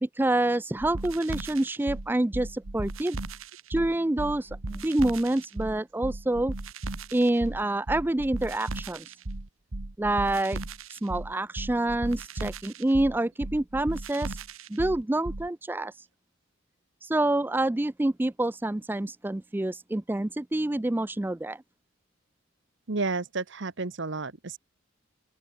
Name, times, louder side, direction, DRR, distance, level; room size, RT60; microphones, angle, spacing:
voice 1, 0.0-3.2 3.7-6.5 7.1-9.1 10.0-10.6 10.9-14.4 14.7-16.1 17.0-21.6, right 1 dB, 10° right, 0.3 m, -27 dB
sound 1, 0.8-15.5, right 2 dB, 70° right, 1.5 m, -36 dB
voice 2, 22.9-24.6, right 3 dB, 55° right, 1.0 m, -31 dB
open air
head